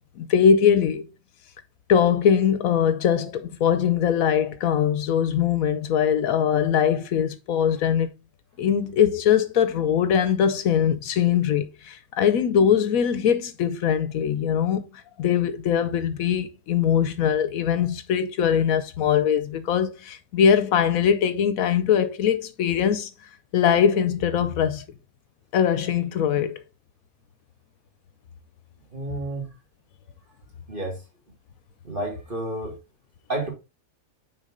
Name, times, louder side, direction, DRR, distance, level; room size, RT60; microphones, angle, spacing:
voice 1, 0.2-1.1 1.9-8.1 8.6-14.8 15.2-23.1 23.5-24.8 25.5-26.6, left 8 dB, 75° left, 1.1 m, -21 dB
voice 2, 28.9-29.4 30.7-31.0 31.8-32.8 33.3-33.5, right 1 dB, 35° right, 2.8 m, -30 dB
6.5 x 4.4 x 3.7 m
omnidirectional pair, 1.5 m